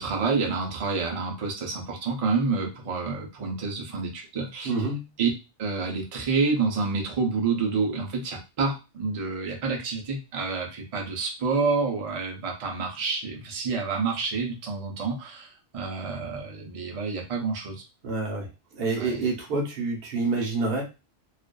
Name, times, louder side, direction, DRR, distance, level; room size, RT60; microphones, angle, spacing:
voice 1, 0.0-4.7 5.2-5.3 5.6-17.8 19.0-19.2, right 4 dB, 40° right, 0 dB, 0.5 m, -28 dB
voice 2, 4.6-5.1 18.0-18.5 18.7-20.8, right 3 dB, 60° right, 0 dB, 0.9 m, -27 dB
2.5 x 2.3 x 2.2 m, 0.28 s
omnidirectional pair, 1.1 m